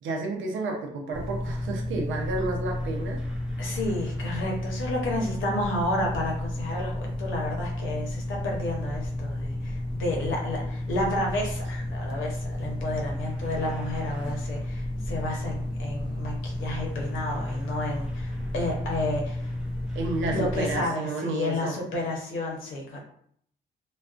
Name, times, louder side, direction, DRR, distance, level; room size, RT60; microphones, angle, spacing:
voice 1, 0.0-3.2 19.9-21.8, right 2 dB, 75° right, 1 dB, 0.6 m, -31 dB
sound 1, 1.1-20.8, left 1 dB, 5° right, 0.6 m, -32 dB
voice 2, 3.6-19.5 20.3-23.0, left 1 dB, 80° left, -1 dB, 0.8 m, -31 dB
2.4 x 2.3 x 2.4 m, 0.65 s
cardioid pair, 90°, 20 cm